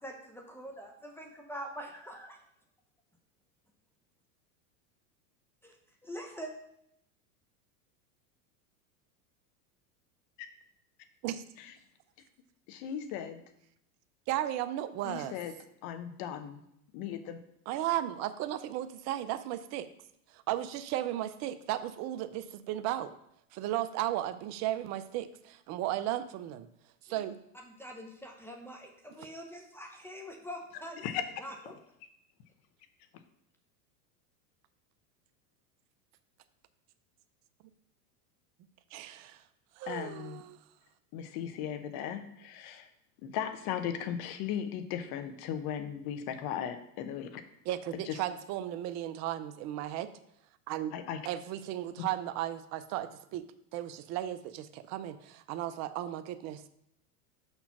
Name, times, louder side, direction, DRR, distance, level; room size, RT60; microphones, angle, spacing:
voice 1, 0.0-2.4 5.6-5.8 6.0-6.5 27.0-27.2 27.5-31.0 31.4-31.7, equal, 5° left, 2 dB, 0.8 m, -44 dB
voice 2, 12.7-13.4 15.0-15.5 15.8-16.6 16.9-17.4 31.0-31.2 39.9-40.4 41.1-42.9 43.2-47.4 48.0-48.2 50.9-51.2 52.0-52.1, left 9 dB, 50° left, 9 dB, 1.0 m, -37 dB
voice 3, 14.3-15.3 17.7-19.9 20.3-23.1 23.5-26.7 27.0-27.4 38.9-39.4 39.8-40.6 47.7-50.1 50.7-50.9 51.3-53.5 53.7-56.7, right 13 dB, 35° right, 11 dB, 0.5 m, -35 dB
5.7 x 4.4 x 5.8 m, 0.76 s
supercardioid pair, 120°, 47 cm